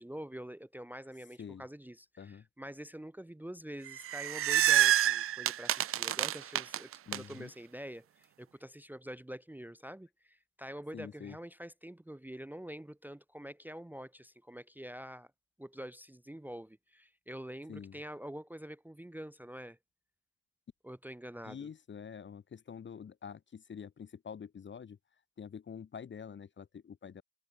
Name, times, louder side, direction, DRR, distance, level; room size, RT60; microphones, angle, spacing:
voice 1, 0.0-15.3 15.6-19.8 20.8-21.7, equal, 5° right, 1.2 m, -46 dB
sound 1, 3.9-7.2, right 12 dB, 35° right, 0.4 m, -28 dB
voice 2, 7.1-7.5 10.9-11.4 17.7-18.0 21.4-25.0 25.4-27.2, left 7 dB, 25° left, 1.3 m, -46 dB
cardioid pair, 180°, 44 cm